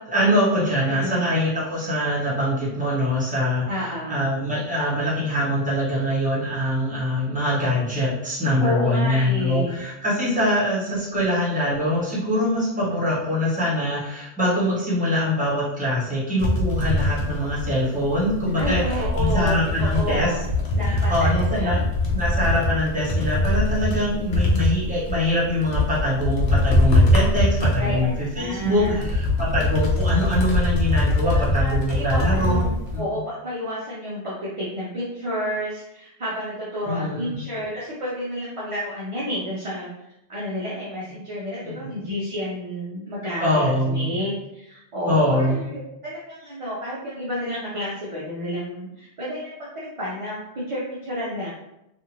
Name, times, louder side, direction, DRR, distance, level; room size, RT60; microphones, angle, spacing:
voice 1, 0.0-20.3 21.1-21.8 22.1-32.7 32.9-33.0 36.8-37.3 41.6-41.9 43.4-44.2 45.1-45.7, left 1 dB, 5° right, -9 dB, 1.1 m, -23 dB
voice 2, 0.9-1.3 3.7-4.2 8.6-9.8 18.6-20.5 20.7-21.8 27.8-29.0 31.2-39.9 40.3-51.5, equal, 45° right, -7 dB, 0.4 m, -30 dB
sound 1, 16.4-33.0, left 1 dB, 75° left, 0.9 m, -23 dB
2.5 x 2.5 x 2.9 m, 0.87 s
omnidirectional pair, 1.2 m